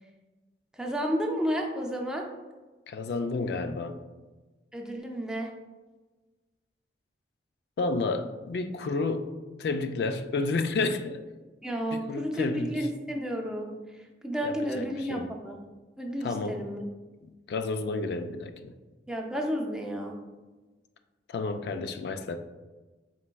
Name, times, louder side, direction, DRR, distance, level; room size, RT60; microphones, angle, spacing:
voice 1, 0.7-2.3 4.7-5.5 11.6-13.8 14.2-15.7 16.0-16.8 19.1-20.2, equal, 5° right, 1 dB, 0.4 m, -31 dB
voice 2, 2.9-4.0 7.8-9.3 9.6-11.2 11.9-12.9 14.4-15.3 16.2-16.6 17.5-18.7 21.3-22.4, left 3 dB, 65° left, 8 dB, 0.3 m, -31 dB
4.5 x 4.0 x 2.2 m, 1.2 s
head